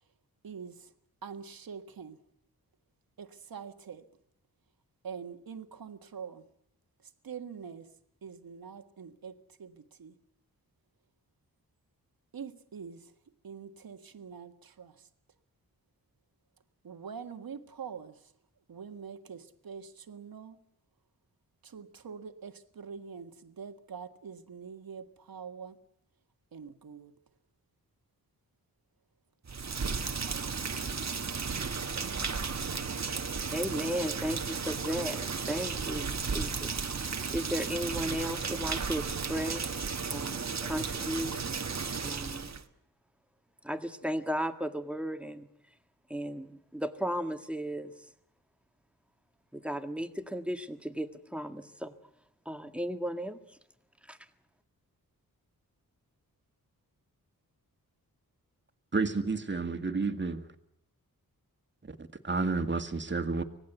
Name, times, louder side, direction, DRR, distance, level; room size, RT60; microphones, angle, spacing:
voice 1, 0.4-0.9 1.2-2.2 3.2-4.1 5.0-6.5 7.0-7.9 8.2-10.2 12.3-13.2 13.4-15.1 16.8-18.3 18.7-20.6 21.6-25.8 26.5-27.2 30.2-31.0, right 6 dB, 75° right, 1.7 m, -45 dB
Rain, 29.4-42.6, right 5 dB, 50° right, 1.5 m, -34 dB
voice 2, 33.5-39.8 40.1-41.4 42.0-42.5 43.6-45.5 46.1-48.1 49.5-51.9 52.5-53.6 54.1-54.2, equal, 5° right, 1.8 m, -35 dB
voice 3, 58.9-60.5 61.8-63.4, right 4 dB, 30° right, 2.1 m, -31 dB
25.0 x 18.0 x 8.2 m
cardioid pair, 70°, 36 cm